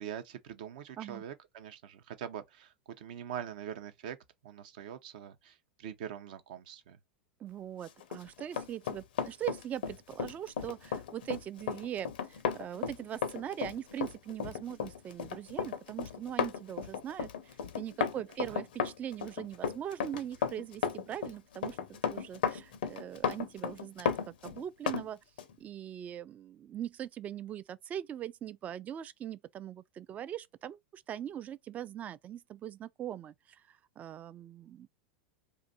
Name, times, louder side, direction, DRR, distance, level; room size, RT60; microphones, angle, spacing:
voice 1, 0.0-4.2 4.4-7.0 18.5-18.6, right 9 dB, 60° right, 0.6 m, -43 dB
voice 2, 7.4-21.8 22.0-25.2 25.6-34.9, right 10 dB, 30° right, 0.3 m, -41 dB
Run, 8.0-25.1 25.4-25.5, left 7 dB, 70° left, 0.5 m, -34 dB
2.6 x 2.4 x 4.0 m
hypercardioid pair, 90°, 5 cm